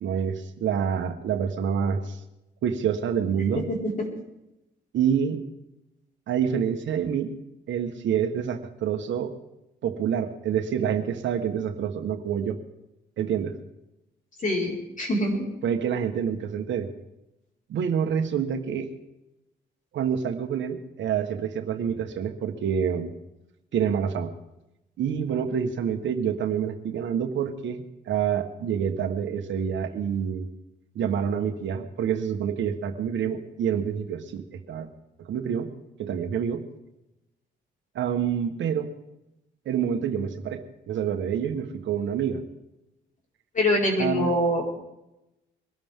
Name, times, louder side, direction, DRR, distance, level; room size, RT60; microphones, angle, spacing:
voice 1, 0.0-2.2 2.6-3.6 4.9-5.4 6.3-7.3 7.7-9.3 9.8-12.6 13.2-13.6 15.6-16.9 17.7-18.9 19.9-23.1 23.7-24.3 25.0-30.5 30.9-34.9 35.2-35.7 36.0-36.6 37.9-38.9 39.6-42.4 44.0-44.3, right 8 dB, 70° right, 7 dB, 1.4 m, -27 dB
voice 2, 3.7-4.1 14.4-15.4 43.5-44.6, left 1 dB, 40° left, -1 dB, 5.1 m, -24 dB
23.0 x 13.0 x 3.7 m, 0.92 s
cardioid pair, 90°, 20 cm